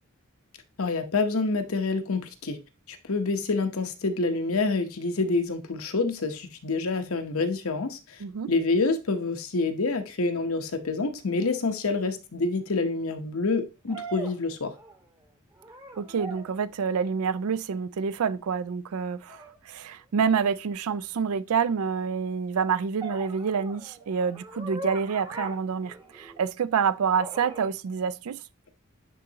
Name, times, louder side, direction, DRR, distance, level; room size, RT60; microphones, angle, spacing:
voice 1, 0.8-2.6 2.9-8.0 8.5-14.7, left 3 dB, 75° left, 0.9 m, -27 dB
voice 2, 8.2-8.5 16.0-28.4, right 6 dB, 85° right, 0.4 m, -27 dB
sound 1, 11.5-11.6 13.9-15.2 15.6-16.6 19.3-19.6 23.0-26.5 27.2-27.7, right 2 dB, 20° right, 0.9 m, -41 dB
10.5 x 3.7 x 2.8 m
head